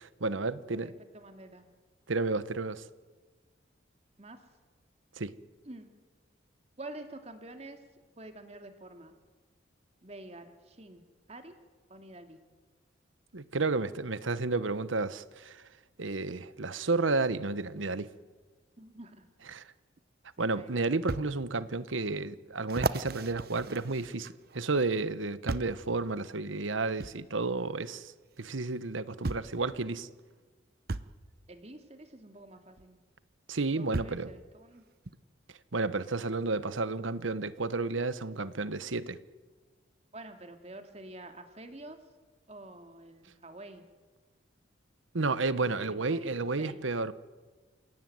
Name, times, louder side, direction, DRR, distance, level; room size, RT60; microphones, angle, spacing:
voice 1, 0.0-0.9 2.1-2.8 5.2-5.3 13.3-15.6 16.0-18.1 19.4-19.6 20.4-24.3 24.5-28.1 28.4-30.1 33.5-34.3 35.7-39.2 45.1-47.1, right 3 dB, 90° right, 1.1 m, -31 dB
voice 2, 0.7-1.6 4.2-4.4 5.7-5.9 6.8-7.8 8.2-9.1 10.0-10.5 10.8-11.0 11.3-11.5 11.9-12.4 18.8-19.2 20.4-20.8 31.5-33.0 33.8-34.8 40.1-42.0 42.5-43.8 45.8-46.3 46.6-46.8, right 2 dB, 35° right, 2.5 m, -47 dB
sound 1, 20.0-20.1 21.1-21.3 21.9-22.0 22.7-24.6 25.5-25.8 27.0-27.2 28.4-28.5 29.2-29.6 30.9-31.1 32.8-32.9 33.9-34.3 35.1-35.2, right 3 dB, 50° right, 0.8 m, -35 dB
28.5 x 17.0 x 9.4 m
head